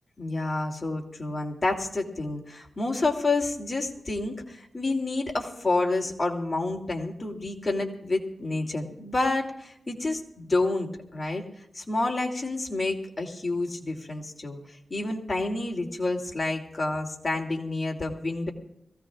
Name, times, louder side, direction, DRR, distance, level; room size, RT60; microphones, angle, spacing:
voice 1, 0.2-11.4 11.7-14.6 14.9-18.5, left 2 dB, 30° left, 1 dB, 2.9 m, -29 dB
23.5 x 16.5 x 2.5 m, 0.78 s
wide cardioid pair, 80°, 0 cm